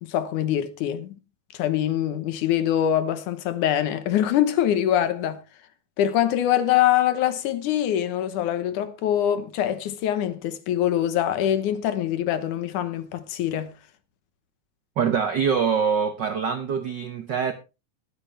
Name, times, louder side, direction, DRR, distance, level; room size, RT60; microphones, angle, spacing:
voice 1, 0.0-1.1 1.5-5.4 6.0-13.7, left 11 dB, 80° left, 2.6 m, -24 dB
voice 2, 15.0-17.5, right 6 dB, 80° right, 1.0 m, -24 dB
21.0 x 8.9 x 3.3 m
omnidirectional pair, 3.5 m